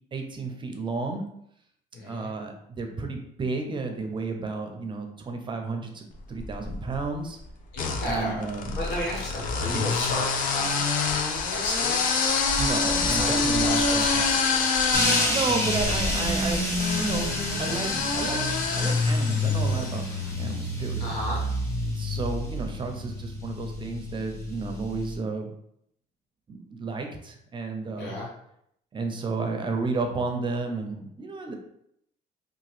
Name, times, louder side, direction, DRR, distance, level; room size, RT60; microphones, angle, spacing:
voice 1, 0.1-1.3 2.0-7.4 8.1-8.8 9.7-9.9 12.6-14.2 15.3-17.3 17.6-20.0 20.4-21.1 21.8-25.5 26.5-28.2 28.9-31.5, right 3 dB, 30° right, 4 dB, 0.5 m, -32 dB
voice 2, 1.9-2.3 7.7-8.5 8.7-10.8 11.5-12.0 13.0-14.3 21.0-21.4 28.0-28.3, left 1 dB, 85° left, -2 dB, 1.1 m, -33 dB
sound 1, 6.4-7.0 7.7-20.0, left 4 dB, 55° left, 0.5 m, -27 dB
sound 2, 14.9-25.2, left 1 dB, 15° left, 0.9 m, -29 dB
2.8 x 2.3 x 3.1 m, 0.73 s
cardioid pair, 110°, 17 cm